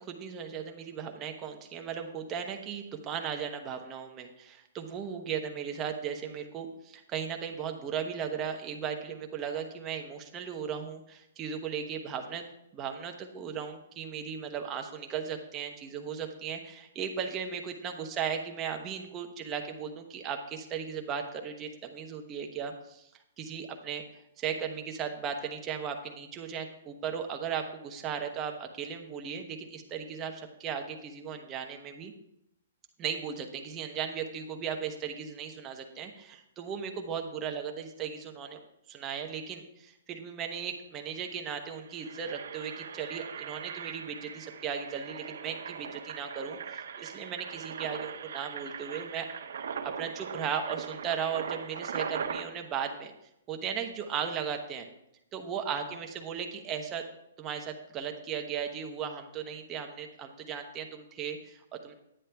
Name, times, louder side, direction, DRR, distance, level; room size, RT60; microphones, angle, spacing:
voice 1, 0.0-12.4 12.7-23.1 23.4-32.1 33.0-38.6 38.9-49.3 49.8-53.1 53.5-54.9 55.3-57.0 57.4-61.9, right 7 dB, 15° right, 3 dB, 0.9 m, -36 dB
Engine, 40.7-40.8 41.0-41.3 41.7-52.4, right 7 dB, 65° right, 0.9 m, -40 dB
10.0 x 10.0 x 3.4 m, 0.81 s
hypercardioid pair, 170°, 0 cm